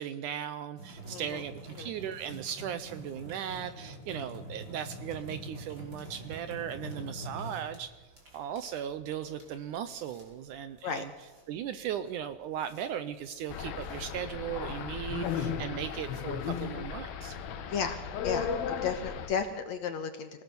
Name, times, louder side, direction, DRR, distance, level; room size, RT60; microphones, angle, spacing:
voice 1, 0.0-11.1 11.5-17.4, right 9 dB, 75° right, 12 dB, 2.0 m, -37 dB
sound 1, 0.8-17.1, right 1 dB, 30° right, 5.8 m, -46 dB
voice 2, 1.1-1.4 1.8-1.9 10.8-11.0 17.7-18.0 18.2-20.4, left 7 dB, 65° left, 8 dB, 2.0 m, -34 dB
sound 2, 13.5-19.3, left 7 dB, 85° left, 3.4 m, -35 dB
26.0 x 17.5 x 7.0 m, 1.2 s
omnidirectional pair, 4.2 m